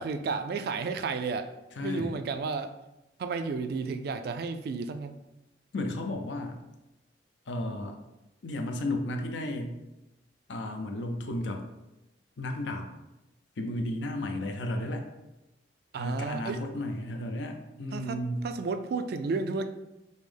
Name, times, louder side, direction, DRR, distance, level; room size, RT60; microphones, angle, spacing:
voice 1, 0.0-1.5 1.8-2.7 3.2-5.2 15.9-16.6 17.9-18.2 18.4-19.7, right 4 dB, 60° right, 9 dB, 0.3 m, -32 dB
voice 2, 1.8-2.1 5.7-6.6 7.5-8.0 8.4-9.8 10.5-11.6 12.4-12.9 13.6-15.1 16.0-18.5, left 1 dB, 80° left, 4 dB, 0.5 m, -33 dB
5.2 x 2.0 x 3.3 m, 0.96 s
head